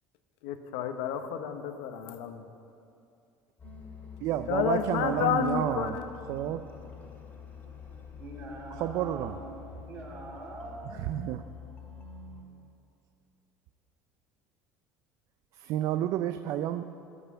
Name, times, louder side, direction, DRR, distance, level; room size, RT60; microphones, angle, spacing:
voice 1, 0.4-2.4 4.5-6.0, left 9 dB, 90° left, 8 dB, 0.8 m, -30 dB
sound 1, 3.6-12.4, left 5 dB, 25° left, 2.0 m, -46 dB
voice 2, 4.2-6.0 6.3-6.7 8.8-9.3 11.1-11.5 15.6-16.8, right 12 dB, 55° right, 9 dB, 0.4 m, -30 dB
voice 3, 8.2-9.6 9.8-11.1, right 2 dB, 40° right, -3 dB, 2.8 m, -43 dB
14.5 x 5.6 x 8.3 m, 2.6 s
cardioid pair, 150°, 7 cm